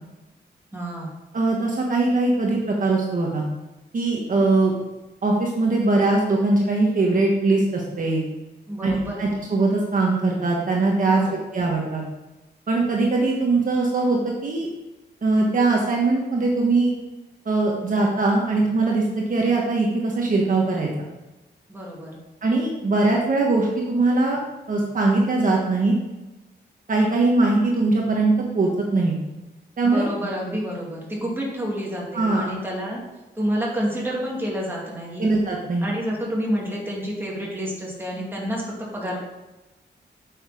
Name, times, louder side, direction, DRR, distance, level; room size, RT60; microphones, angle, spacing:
voice 1, 0.7-1.1 8.7-9.2 11.1-11.4 21.7-22.2 29.8-33.0 33.4-35.3 35.8-39.2, equal, 10° right, -4 dB, 2.4 m, -29 dB
voice 2, 1.3-3.4 3.9-4.7 5.2-8.2 8.8-11.2 11.5-12.0 12.7-14.7 15.2-16.9 17.4-20.9 22.4-24.4 24.7-25.9 26.9-29.2 29.8-30.1 32.1-32.5 35.2-35.9, right 3 dB, 50° right, -1 dB, 1.4 m, -21 dB
8.7 x 6.5 x 5.0 m, 1.1 s
wide cardioid pair, 165°, 18 cm